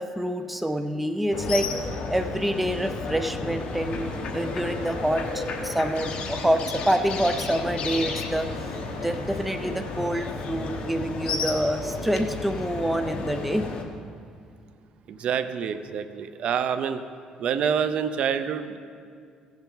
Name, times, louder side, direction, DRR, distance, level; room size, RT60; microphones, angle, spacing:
voice 1, 0.0-1.7 2.1-8.5 8.9-13.7, right 1 dB, 5° right, 8 dB, 0.4 m, -27 dB
sound 1, 1.3-13.8, left 3 dB, 55° left, 1.1 m, -32 dB
Wind instrument woodwind instrument, 3.8-10.1, right 4 dB, 80° right, 2.5 m, -47 dB
voice 2, 15.1-17.0 17.4-18.8, right 7 dB, 55° right, 11 dB, 0.5 m, -27 dB
16.0 x 7.1 x 3.9 m, 2.2 s
cardioid pair, 130°, 2 cm